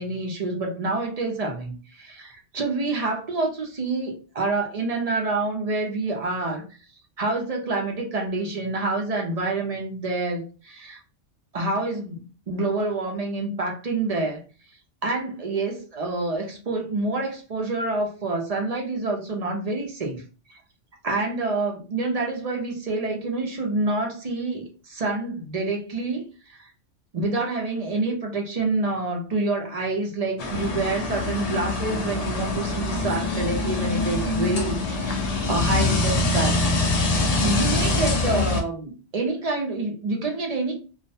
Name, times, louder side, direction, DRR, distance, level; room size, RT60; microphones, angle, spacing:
voice 1, 0.0-6.6 7.2-11.0 11.5-14.4 15.0-20.2 20.5-20.6 21.0-26.2 26.5-26.7 27.1-36.6 37.4-40.7, right 3 dB, 45° right, 1 dB, 0.5 m, -27 dB
sound 1, 30.4-38.6, left 2 dB, 85° left, 0.3 m, -24 dB
2.4 x 2.1 x 2.6 m, 0.35 s
omnidirectional pair, 1.2 m